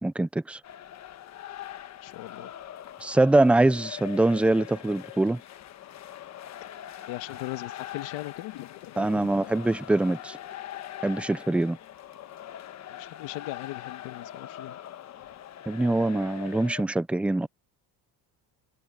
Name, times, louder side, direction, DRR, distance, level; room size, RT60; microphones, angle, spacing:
voice 1, 0.0-0.6 3.0-5.4 9.0-10.4 11.0-11.8 15.7-17.5, right 2 dB, 5° right, 0.3 m, -23 dB
sound 1, 0.6-16.8, left 11 dB, 40° left, 1.2 m, -42 dB
voice 2, 2.0-2.5 7.1-9.5 12.9-14.8, left 18 dB, 90° left, 1.6 m, -39 dB
cardioid pair, 165°, 43 cm